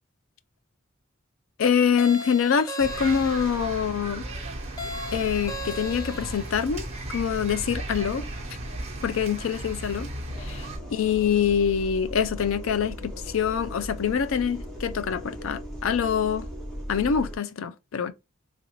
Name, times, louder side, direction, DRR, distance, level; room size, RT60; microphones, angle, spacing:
voice 1, 1.6-4.3 5.1-8.3 9.0-10.1 10.4-10.5 10.9-16.5 16.9-18.1, left 7 dB, 70° left, 0.4 m, -25 dB
sound 1, 2.0-3.7 4.8-6.5, left 1 dB, 15° left, 0.5 m, -37 dB
sound 2, 2.8-10.8, right 1 dB, 30° right, 0.9 m, -35 dB
sound 3, 10.3-17.4, equal, ahead, 1.0 m, -38 dB
3.2 x 2.5 x 3.0 m
head